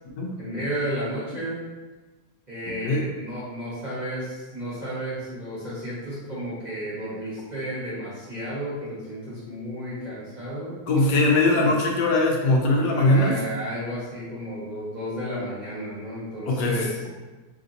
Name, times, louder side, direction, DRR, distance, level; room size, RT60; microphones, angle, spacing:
voice 1, 0.4-1.6 2.5-10.8 11.5-11.7 12.9-17.0, equal, 30° right, -9 dB, 1.1 m, -32 dB
voice 2, 10.9-13.3 16.5-16.9, left 2 dB, 85° left, -1 dB, 1.3 m, -20 dB
3.3 x 2.6 x 3.9 m, 1.2 s
omnidirectional pair, 1.8 m